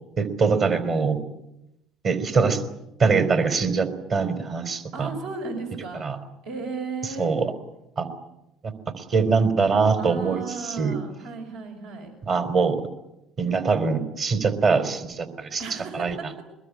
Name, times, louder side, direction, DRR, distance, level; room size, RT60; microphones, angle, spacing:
voice 1, 0.2-1.2 2.0-2.6 3.0-5.1 6.0-6.2 7.2-7.5 8.0-8.1 8.6-10.4 10.8-10.9 12.2-12.8 13.4-15.6 15.9-16.1, right 4 dB, 50° right, 8 dB, 3.9 m, -23 dB
voice 2, 4.9-6.1 6.4-7.4 9.9-12.1 15.6-16.4, right 4 dB, 75° right, 3 dB, 6.2 m, -35 dB
23.0 x 21.0 x 9.8 m, 0.87 s
hypercardioid pair, 75°, 0 cm